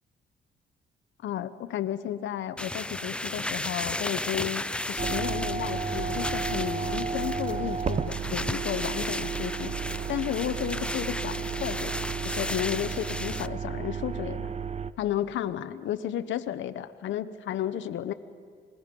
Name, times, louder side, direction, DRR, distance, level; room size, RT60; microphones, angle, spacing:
voice 1, 1.2-9.7 10.1-11.9 12.2-14.5 15.0-18.1, left 11 dB, 70° left, 10 dB, 0.8 m, -33 dB
sound 1, 2.6-13.5, left 1 dB, 5° left, 0.4 m, -34 dB
sound 2, 5.0-14.9, right 6 dB, 35° right, 0.7 m, -33 dB
27.0 x 20.0 x 5.3 m, 2.1 s
cardioid pair, 90°, 20 cm